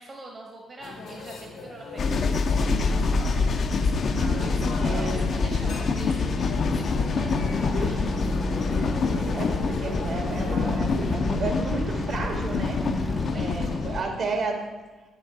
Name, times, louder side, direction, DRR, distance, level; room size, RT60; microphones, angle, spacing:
voice 1, 0.0-3.3 4.3-8.1 13.0-14.4, right 2 dB, 35° right, 1 dB, 1.1 m, -43 dB
sound 1, 0.8-11.2, left 3 dB, 85° left, 1.5 m, -38 dB
sound 2, 2.0-14.0, left 4 dB, 55° left, 0.6 m, -26 dB
voice 2, 4.1-5.2 9.3-12.8 13.3-14.6, right 3 dB, 65° right, 3 dB, 1.6 m, -32 dB
sound 3, 7.2-13.3, equal, 10° right, 0.5 m, -34 dB
7.9 x 5.8 x 4.7 m, 1.3 s
cardioid pair, 90°, 0 cm